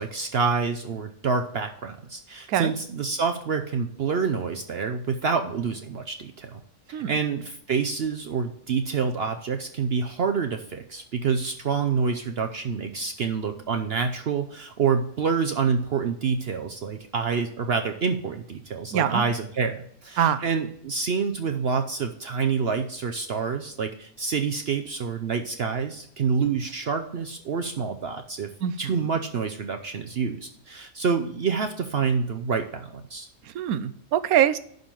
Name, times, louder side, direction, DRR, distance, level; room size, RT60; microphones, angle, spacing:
voice 1, 0.0-6.6 6.9-28.5 28.8-33.3, right 5 dB, 55° right, 6 dB, 0.8 m, -27 dB
voice 2, 18.9-19.2 20.2-20.4 28.6-29.0 33.5-34.6, right 10 dB, 85° right, 14 dB, 1.1 m, -24 dB
11.5 x 3.9 x 7.4 m, 0.68 s
omnidirectional pair, 1.5 m